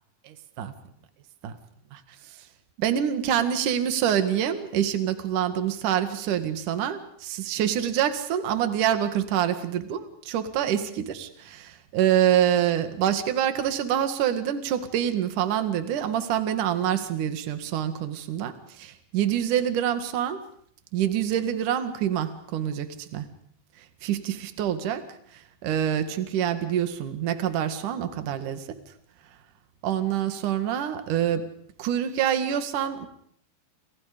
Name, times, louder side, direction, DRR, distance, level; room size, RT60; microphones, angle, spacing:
voice 1, 2.8-20.4 20.9-23.3 24.0-25.0 25.3-28.8 29.8-31.4 31.8-33.1, right 10 dB, 55° right, 9 dB, 2.9 m, -26 dB
29.0 x 28.5 x 5.2 m, 0.64 s
omnidirectional pair, 5.3 m